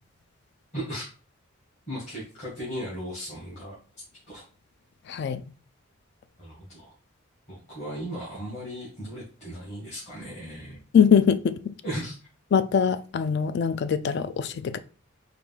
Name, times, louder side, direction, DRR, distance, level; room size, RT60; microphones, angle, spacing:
voice 1, 0.7-1.1 1.9-3.8 4.3-4.4 6.4-6.9 7.5-10.8 11.8-12.2, equal, 35° left, 1.8 m, -36 dB
voice 2, 5.1-5.4 10.9-11.7 12.5-14.8, left 7 dB, 55° left, 0.3 m, -22 dB
4.8 x 2.3 x 3.5 m
head